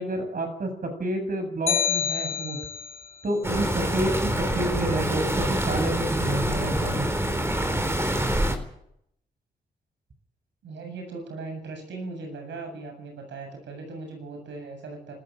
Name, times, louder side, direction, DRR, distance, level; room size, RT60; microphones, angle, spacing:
voice 1, 0.0-2.6 3.2-4.1 4.4-7.1, right 1 dB, 50° right, 7 dB, 7.1 m, -29 dB
sound 1, 1.7-3.0, left 8 dB, 35° left, 3.9 m, -27 dB
sound 2, 3.4-8.6, right 1 dB, 15° right, 3.8 m, -26 dB
voice 2, 10.6-15.1, right 3 dB, 85° right, 4 dB, 7.8 m, -38 dB
20.0 x 14.5 x 9.2 m, 0.73 s
cardioid pair, 70°, 18 cm